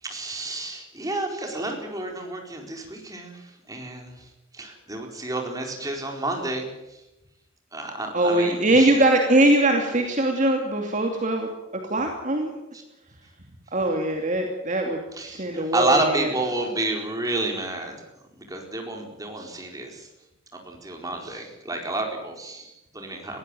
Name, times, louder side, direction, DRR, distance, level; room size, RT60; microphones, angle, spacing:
voice 1, 0.0-7.0 7.7-8.9 12.7-12.8 15.1-20.1 20.5-23.4, right 2 dB, 20° right, 2 dB, 4.3 m, -30 dB
voice 2, 8.1-11.5 11.9-12.5 13.7-15.0 15.3-16.3, right 1 dB, 40° right, 2 dB, 2.6 m, -21 dB
21.5 x 15.5 x 9.1 m, 0.94 s
head